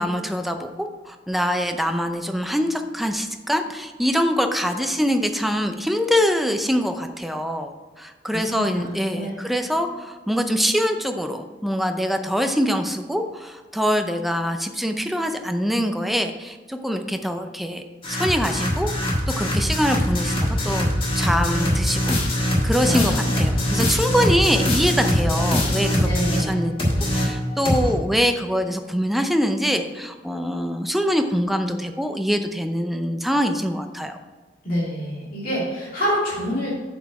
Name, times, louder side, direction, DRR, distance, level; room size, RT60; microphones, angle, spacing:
voice 1, 0.0-17.8 18.1-26.7 27.1-34.2, equal, ahead, 5 dB, 0.5 m, -24 dB
voice 2, 8.3-9.4 22.9-23.2 24.2-24.4 26.0-26.6 34.6-36.7, equal, 55° left, -7 dB, 2.6 m, -27 dB
sound 1, 18.0-26.5 26.8-27.9, equal, 30° left, 1.6 m, -22 dB
7.9 x 5.2 x 4.7 m, 1.3 s
head